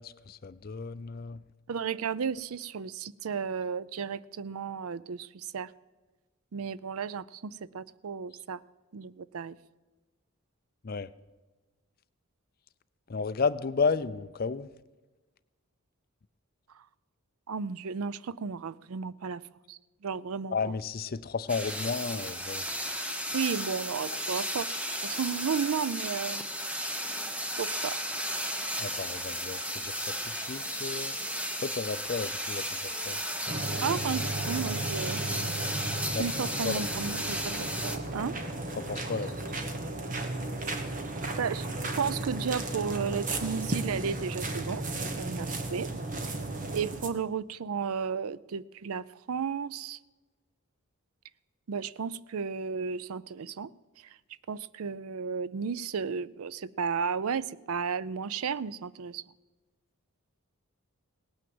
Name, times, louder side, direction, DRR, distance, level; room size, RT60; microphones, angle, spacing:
voice 1, 0.0-1.4 10.8-11.1 13.1-14.7 20.5-22.6 28.8-30.0 30.3-31.1 31.6-33.2 36.1-36.2 36.6-36.9 38.8-39.6, left 4 dB, 40° left, 15 dB, 0.4 m, -33 dB
voice 2, 1.7-5.7 6.5-8.6 8.9-9.6 17.5-19.4 19.7-20.6 23.3-24.7 25.0-26.5 27.6-28.0 33.8-35.2 36.1-38.4 41.4-41.7 42.0-44.8 45.2-45.9 46.7-50.0 51.7-53.7 54.5-59.2, right 6 dB, 75° right, 19 dB, 0.5 m, -33 dB
sound 1, 21.5-38.0, equal, 5° right, 0.8 m, -34 dB
sound 2, 33.5-47.1, right 2 dB, 35° right, 1.2 m, -34 dB
17.5 x 9.3 x 7.8 m, 1.2 s
head